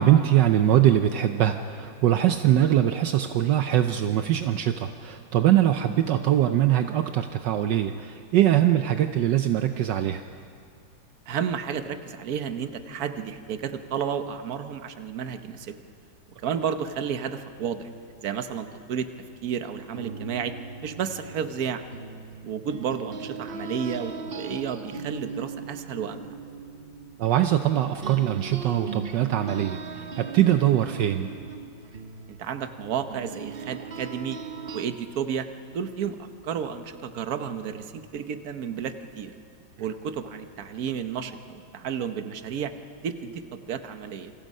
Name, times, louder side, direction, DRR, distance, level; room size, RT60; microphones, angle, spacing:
voice 1, 0.0-10.2 27.2-31.3, right 11 dB, 70° right, 8 dB, 1.3 m, -22 dB
voice 2, 11.3-15.8 16.4-17.9 18.2-19.1 19.4-20.5 20.8-21.9 22.4-26.2 32.3-34.4 34.7-35.5 35.7-39.3 39.8-42.7 43.0-44.3, right 7 dB, 55° right, 9 dB, 1.4 m, -32 dB
sound 1, 19.9-27.7 28.0-34.9, right 5 dB, 40° right, 0.9 m, -39 dB
28.5 x 25.0 x 5.5 m, 2.5 s
omnidirectional pair, 2.0 m